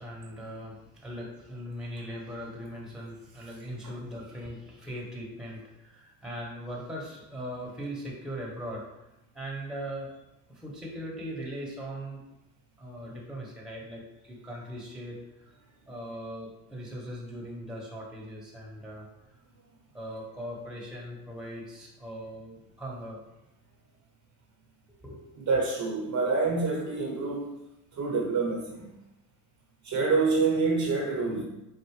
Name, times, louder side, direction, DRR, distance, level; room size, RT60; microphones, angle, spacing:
voice 1, 0.0-9.0 9.3-10.2 10.5-12.2 12.8-15.5 15.9-19.1 19.9-23.2 25.0-25.2, equal, ahead, -3 dB, 1.2 m, -40 dB
voice 2, 25.4-27.5 27.9-28.9 29.8-31.4, right 4 dB, 35° right, -1 dB, 1.1 m, -27 dB
4.6 x 2.5 x 3.2 m, 0.92 s
hypercardioid pair, 60°, 48 cm